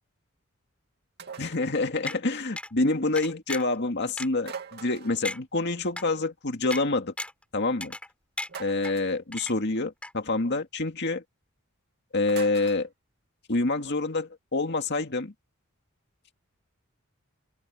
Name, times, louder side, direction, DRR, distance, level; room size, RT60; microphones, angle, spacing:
sound 1, 1.2-1.7 4.4-5.2 8.5-9.2 12.3-12.8, right 6 dB, 50° right, 2.5 m, -42 dB
voice 1, 1.4-7.1 7.5-8.0 8.6-11.2 12.1-12.9 13.5-15.3, left 2 dB, 55° left, 2.1 m, -27 dB
sound 2, 2.1-2.2 2.6-2.7 3.2-3.8 4.2-4.3 4.8-4.9 5.2-5.4 6.0-6.1 6.7-6.8 7.2-7.4 7.8-8.1 8.4-8.9 9.3-9.8 10.0-10.1, left 1 dB, 5° left, 3.4 m, -35 dB
open air
head